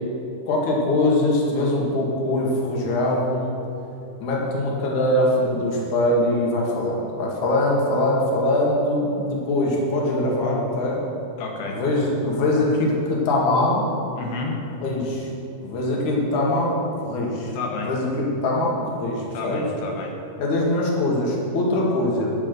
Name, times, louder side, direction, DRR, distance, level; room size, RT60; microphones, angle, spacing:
voice 1, 0.5-3.5 4.2-11.0 11.7-13.8 14.8-15.3 15.6-17.5 17.8-19.6 20.4-22.4, left 1 dB, 55° left, -3 dB, 3.2 m, -22 dB
voice 2, 11.4-11.8 14.2-14.6 17.5-17.9 19.3-20.1, left 4 dB, 85° left, 0 dB, 3.4 m, -31 dB
11.0 x 10.0 x 6.9 m, 2.8 s
omnidirectional pair, 4.6 m